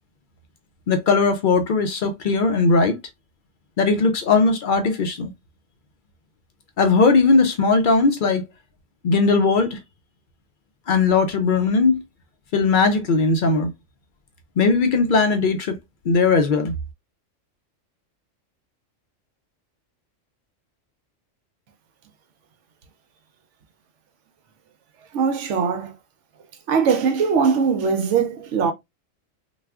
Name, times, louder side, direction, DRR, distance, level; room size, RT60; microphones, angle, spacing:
voice 1, 0.9-3.0 3.8-5.3 6.8-8.4 9.0-9.8 10.9-12.0 12.5-13.7 14.6-15.8 16.1-16.7, left 4 dB, 60° left, 0.5 m, -18 dB
voice 2, 25.1-25.9 26.7-28.7, right 6 dB, 70° right, 0.9 m, -21 dB
3.3 x 2.4 x 2.2 m
omnidirectional pair, 1.3 m